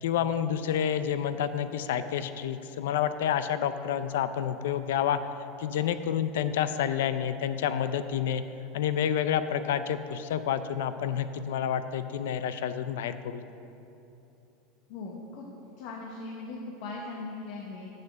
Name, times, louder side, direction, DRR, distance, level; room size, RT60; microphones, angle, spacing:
voice 1, 0.0-5.2 5.6-8.4 8.7-13.4, left 9 dB, 90° left, 12 dB, 0.4 m, -29 dB
voice 2, 14.9-15.5 15.8-17.9, left 3 dB, 60° left, -1 dB, 1.1 m, -39 dB
6.9 x 6.4 x 7.4 m, 3.0 s
supercardioid pair, 155°, 0 cm